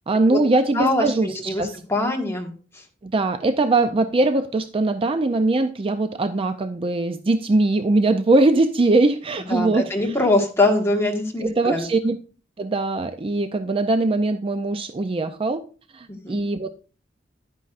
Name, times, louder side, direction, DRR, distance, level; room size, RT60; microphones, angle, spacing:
voice 1, 0.1-1.7 3.0-9.9 11.4-12.2 12.6-15.6 15.9-16.7, right 2 dB, 30° right, 10 dB, 0.4 m, -21 dB
voice 2, 0.7-2.8 9.5-11.9 16.1-16.4, left 2 dB, 15° left, 2 dB, 1.5 m, -23 dB
10.5 x 9.4 x 2.5 m, 0.37 s
head